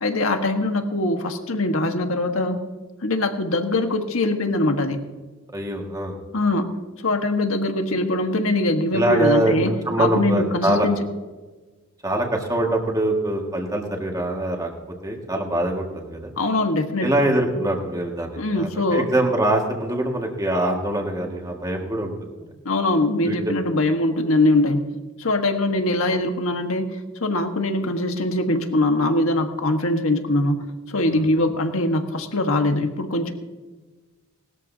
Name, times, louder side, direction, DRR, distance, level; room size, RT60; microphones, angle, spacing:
voice 1, 0.0-2.6 3.0-5.0 6.3-6.7 7.0-9.7 10.0-11.0 16.4-17.1 18.4-19.1 22.6-24.8 25.2-26.9 27.2-33.3, left 2 dB, 75° left, 5 dB, 1.5 m, -22 dB
voice 2, 5.5-6.1 8.9-10.9 12.0-14.7 15.0-16.3 17.0-22.1 22.4-22.5 23.3-23.6 31.1-31.3, right 1 dB, 15° right, 1 dB, 1.9 m, -23 dB
20.0 x 13.0 x 2.8 m, 1.3 s
head